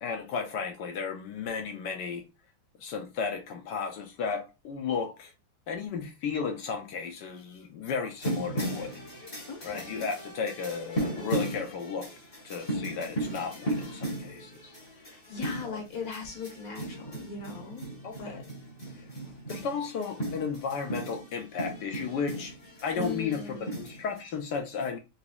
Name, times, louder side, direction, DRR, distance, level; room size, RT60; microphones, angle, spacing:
voice 1, 0.0-2.2 2.8-5.3 5.7-8.9 9.6-12.1 12.4-14.7 15.6-15.8 18.0-18.4 18.9-19.1 19.5-22.5 22.8-25.0, left 5 dB, 70° left, 1.2 m, -34 dB
sound 1, 8.2-24.2, right 1 dB, 20° left, 0.7 m, -36 dB
voice 2, 9.4-10.1 14.9-17.9 18.2-18.4 22.9-23.8, left 5 dB, 50° left, 1.4 m, -39 dB
4.0 x 2.9 x 2.3 m
omnidirectional pair, 2.1 m